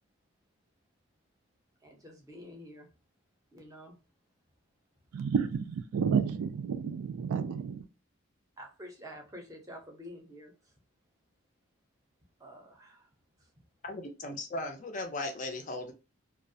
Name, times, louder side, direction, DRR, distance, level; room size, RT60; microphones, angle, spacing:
voice 1, 1.8-2.9 3.5-4.0 8.6-10.7 12.4-13.1 13.4-13.5, equal, 15° right, 0.6 m, -48 dB
voice 2, 5.1-7.8, right 6 dB, 80° right, 0.3 m, -31 dB
voice 3, 13.8-15.9, left 2 dB, 35° left, 0.4 m, -37 dB
2.3 x 2.0 x 2.6 m
head